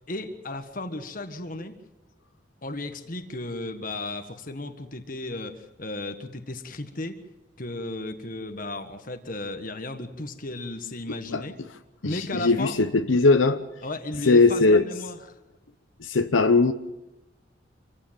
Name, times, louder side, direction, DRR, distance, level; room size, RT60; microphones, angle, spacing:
voice 1, 0.1-1.8 2.6-7.2 7.6-11.6 12.0-12.8 13.8-15.3, left 2 dB, 45° left, 1.5 m, -34 dB
voice 2, 12.0-13.6 14.3-14.8 16.0-16.7, left 3 dB, 85° left, 0.9 m, -19 dB
27.0 x 15.5 x 7.5 m
head